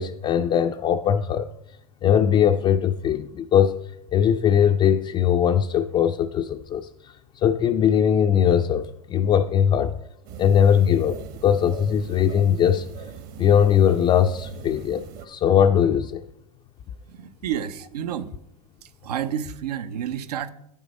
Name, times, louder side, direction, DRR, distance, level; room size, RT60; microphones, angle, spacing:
voice 1, 0.0-1.5 2.0-3.8 4.1-6.9 7.4-9.9 10.4-12.9 13.4-16.2, left 8 dB, 25° left, 5 dB, 0.4 m, -20 dB
sound 1, 10.3-15.3, right 7 dB, 45° right, 1.0 m, -41 dB
voice 2, 17.1-18.3 18.8-20.5, right 9 dB, 80° right, 12 dB, 0.7 m, -30 dB
9.5 x 7.3 x 5.2 m, 0.79 s
hypercardioid pair, 120°, 20 cm